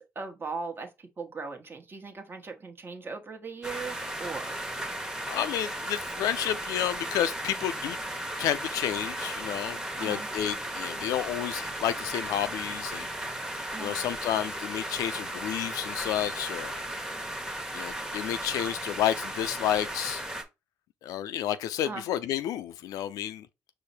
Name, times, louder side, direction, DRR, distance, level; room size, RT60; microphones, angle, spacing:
voice 1, 0.1-4.6 10.0-10.3 13.7-13.9 21.8-22.1, right 4 dB, 35° right, 1.1 m, -38 dB
sound 1, 3.6-20.4, right 1 dB, 10° right, 1.1 m, -36 dB
voice 2, 5.3-8.0 8.4-13.1 13.8-16.8 17.7-20.2 21.0-23.5, left 11 dB, 80° left, 0.4 m, -30 dB
4.9 x 2.1 x 4.2 m
supercardioid pair, 55°, 6 cm